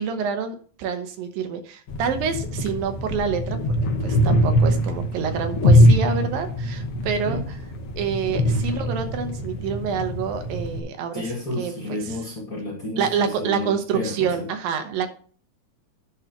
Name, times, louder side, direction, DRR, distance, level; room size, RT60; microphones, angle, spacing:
voice 1, 0.0-3.6 4.0-7.4 8.0-11.2 11.6-12.0 13.0-15.1, right 6 dB, 75° right, 7 dB, 2.6 m, -27 dB
sound 1, 1.9-10.8, equal, 65° left, 1.5 m, -22 dB
voice 2, 11.1-14.5, left 2 dB, 30° left, -3 dB, 2.1 m, -31 dB
11.0 x 4.0 x 5.8 m, 0.43 s
omnidirectional pair, 4.2 m